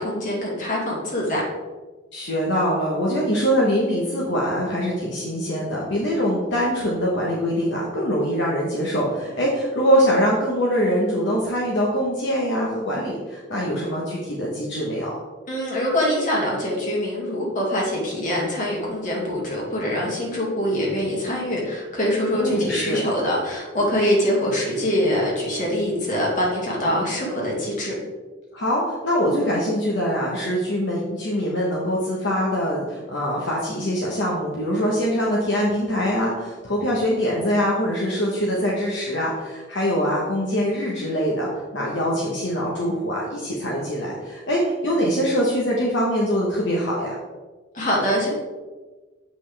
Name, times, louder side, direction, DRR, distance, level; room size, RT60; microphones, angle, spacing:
voice 1, 0.0-1.4 15.5-27.9 47.7-48.3, equal, 45° left, -4 dB, 2.2 m, -24 dB
voice 2, 2.1-15.1 22.3-23.0 28.5-47.1, equal, 65° left, -3 dB, 1.1 m, -23 dB
7.8 x 5.5 x 3.4 m, 1.3 s
head